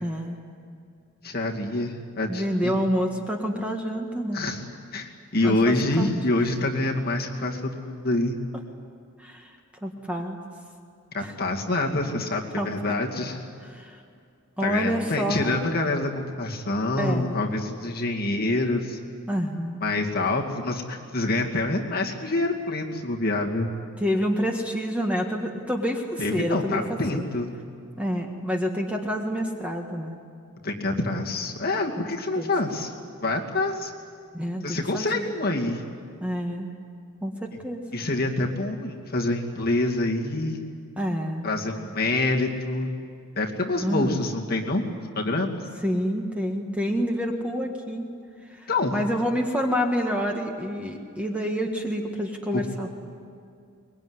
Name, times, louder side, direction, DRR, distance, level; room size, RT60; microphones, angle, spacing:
voice 1, 0.0-0.4 2.3-4.5 5.4-6.1 9.2-9.6 9.8-10.4 11.2-11.3 12.6-13.0 13.7-14.0 14.6-15.5 17.0-17.4 19.3-19.8 24.0-26.8 27.1-27.2 28.0-30.2 32.4-32.5 34.3-35.3 36.2-36.7 37.2-37.8 41.0-41.5 43.8-44.2 45.8-48.1 48.4-52.9, equal, 5° right, 2 dB, 1.7 m, -28 dB
voice 2, 1.2-2.7 4.3-4.6 4.9-8.4 11.1-13.4 14.6-19.0 19.8-23.7 26.2-27.5 30.6-32.9 33.2-33.9 34.6-35.8 37.9-40.6 41.4-42.9 43.4-44.8 45.1-45.6 48.7-49.0 52.5-52.6, left 2 dB, 45° left, 0 dB, 2.5 m, -26 dB
23.5 x 21.5 x 9.8 m, 2.4 s
head